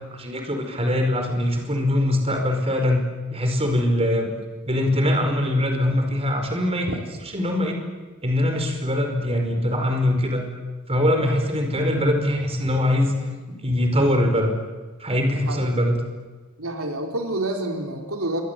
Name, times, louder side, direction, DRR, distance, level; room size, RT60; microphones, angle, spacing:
voice 1, 0.1-3.0 3.3-4.3 4.7-6.9 7.3-7.8 8.2-10.5 10.9-13.1 13.5-14.5 15.0-16.0, left 1 dB, 30° right, 4 dB, 5.0 m, -22 dB
voice 2, 15.3-15.7 16.6-18.4, right 1 dB, 80° right, 3 dB, 4.0 m, -28 dB
27.5 x 24.0 x 8.4 m, 1.3 s
head